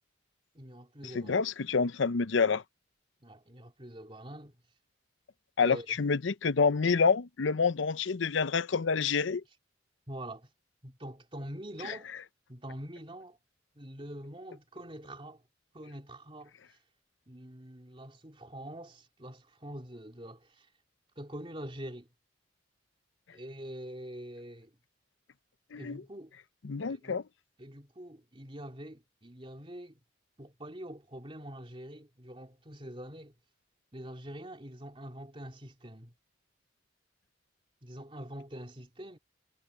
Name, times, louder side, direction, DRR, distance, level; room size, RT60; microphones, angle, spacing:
voice 1, 0.5-1.4 3.2-4.6 5.6-6.0 10.1-10.5 10.8-12.1 12.5-13.4 13.7-15.4 15.7-16.8 17.3-20.7 21.2-22.1 23.3-24.7 25.8-26.3 26.9-27.2 27.6-30.0 30.4-33.3 33.9-36.1 37.8-39.2, right 1 dB, 25° right, 2.8 m, -45 dB
voice 2, 1.1-2.6 5.6-9.4 25.7-26.0 26.6-27.2, left 5 dB, 75° left, 0.6 m, -27 dB
head